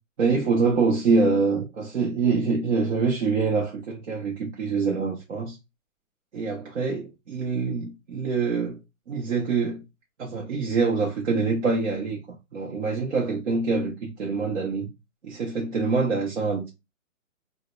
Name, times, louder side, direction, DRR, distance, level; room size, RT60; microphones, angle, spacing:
voice 1, 0.2-5.6 6.3-8.8 9.1-9.8 10.2-12.2 12.5-14.9 15.2-16.7, right 4 dB, 55° right, 0.6 m, -25 dB
2.1 x 2.0 x 2.8 m
hypercardioid pair, 165°, 42 cm